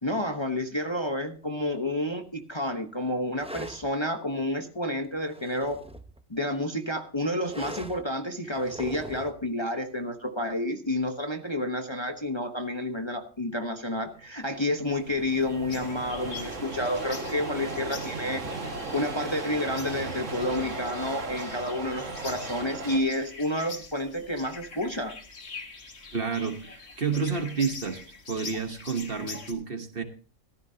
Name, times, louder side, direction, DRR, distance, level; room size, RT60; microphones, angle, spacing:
voice 1, 0.0-5.8 6.3-18.4 18.9-25.1, left 1 dB, 20° left, 4 dB, 1.0 m, -30 dB
sound 1, 3.4-3.9 5.0-6.2 7.5-8.0 8.5-9.4, right 1 dB, 5° right, 0.6 m, -41 dB
sound 2, 14.2-14.3 14.5-23.0, right 2 dB, 65° right, 2.2 m, -36 dB
sound 3, 15.7-29.5, left 4 dB, 50° left, 1.8 m, -44 dB
voice 2, 26.1-28.0 28.3-30.0, right 5 dB, 45° right, 7 dB, 1.4 m, -30 dB
14.5 x 14.0 x 2.8 m, 0.38 s
omnidirectional pair, 1.4 m